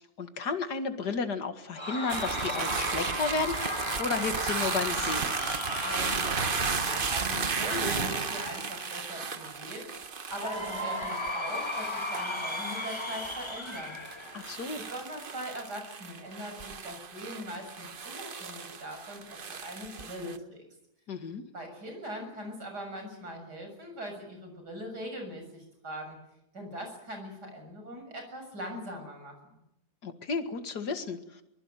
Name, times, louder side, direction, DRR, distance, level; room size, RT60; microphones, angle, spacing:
voice 1, 0.0-3.6 4.0-5.4 14.3-14.8 21.1-21.4 30.0-31.2, left 4 dB, 85° left, 8 dB, 2.4 m, -32 dB
Cheering / Crowd, 1.8-9.1 10.3-15.1, left 1 dB, 15° left, 2.1 m, -36 dB
sound 1, 2.1-20.4, right 5 dB, 35° right, 1.1 m, -35 dB
voice 2, 5.8-9.9 10.3-14.0 14.8-20.7 21.5-26.2 26.5-29.3, equal, 85° right, 4 dB, 7.7 m, -41 dB
23.5 x 21.0 x 9.1 m, 0.85 s
omnidirectional pair, 1.7 m